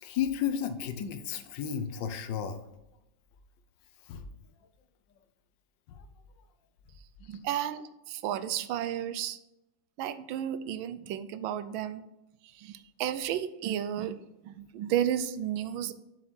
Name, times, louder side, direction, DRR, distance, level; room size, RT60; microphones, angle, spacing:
voice 1, 0.0-2.6 4.1-4.3 5.9-6.0 7.2-7.4, left 8 dB, 70° left, 9 dB, 1.3 m, -33 dB
voice 2, 7.2-9.4 10.0-12.0 12.4-14.2 14.4-15.9, right 10 dB, 80° right, 12 dB, 1.3 m, -33 dB
7.2 x 5.0 x 4.3 m, 0.90 s
omnidirectional pair, 2.2 m